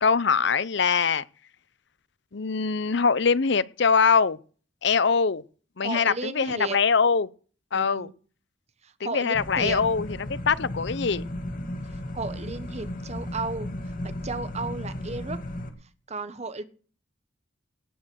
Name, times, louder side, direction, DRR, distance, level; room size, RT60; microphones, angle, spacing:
voice 1, 0.0-1.2 2.3-4.4 4.8-5.4 5.8-7.3 7.7-8.1 9.0-11.2, left 5 dB, 60° left, 0.7 m, -23 dB
voice 2, 5.8-6.8 7.7-8.1 8.8-9.8 12.1-13.7 14.0-15.4 16.1-16.6, right 3 dB, 35° right, 1.2 m, -34 dB
sound 1, 9.3-15.7, left 1 dB, 45° left, 2.1 m, -35 dB
18.0 x 6.6 x 6.4 m
head